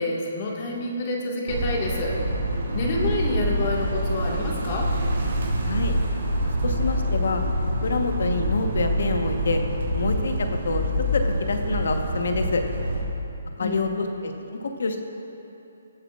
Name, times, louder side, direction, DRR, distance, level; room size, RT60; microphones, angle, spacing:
voice 1, 0.0-2.2 2.7-4.9 13.6-14.0, left 2 dB, 35° left, -2 dB, 1.8 m, -28 dB
sound 1, 1.5-13.0, equal, 70° right, 2.5 m, -26 dB
voice 2, 5.6-5.9 6.6-9.6 9.9-10.8 11.1-12.6 13.6-15.0, left 3 dB, 70° left, 5 dB, 1.1 m, -27 dB
21.5 x 8.0 x 2.5 m, 3.0 s
hypercardioid pair, 165°, 0 cm